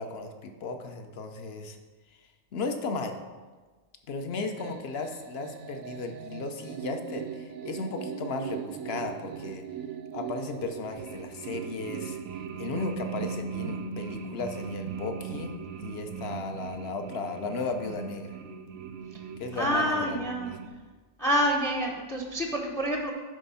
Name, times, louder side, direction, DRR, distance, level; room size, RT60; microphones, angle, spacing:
voice 1, 0.0-1.8 2.5-3.2 4.1-9.6 10.1-12.2 12.6-15.5 15.8-18.4 19.4-20.6, left 3 dB, 55° left, 6 dB, 0.9 m, -35 dB
sound 1, 4.6-20.7, right 7 dB, 90° right, 1.0 m, -39 dB
voice 2, 19.5-20.5 21.2-23.1, equal, 5° left, 2 dB, 0.5 m, -27 dB
10.0 x 3.5 x 5.6 m, 1.4 s
omnidirectional pair, 1.3 m